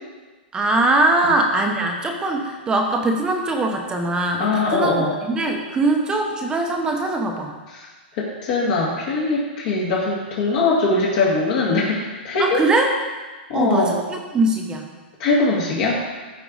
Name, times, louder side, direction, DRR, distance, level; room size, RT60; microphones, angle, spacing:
voice 1, 0.5-7.5 12.4-12.9 13.5-14.9, right 2 dB, 15° right, 2 dB, 0.9 m, -21 dB
voice 2, 4.4-5.2 7.7-7.9 8.1-12.6 13.5-14.0 15.2-16.0, left 3 dB, 50° left, -4 dB, 2.1 m, -21 dB
13.5 x 4.7 x 4.0 m, 1.3 s
hypercardioid pair, 145°, 6 cm